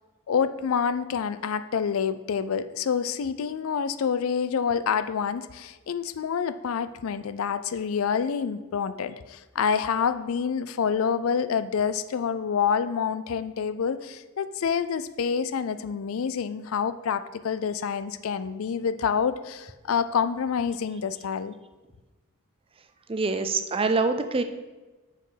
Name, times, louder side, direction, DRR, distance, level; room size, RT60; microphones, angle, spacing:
voice 1, 0.3-21.5, left 6 dB, 65° left, 13 dB, 0.4 m, -27 dB
voice 2, 23.1-24.4, right 3 dB, 25° right, 8 dB, 0.5 m, -25 dB
6.5 x 6.3 x 5.0 m, 1.2 s
head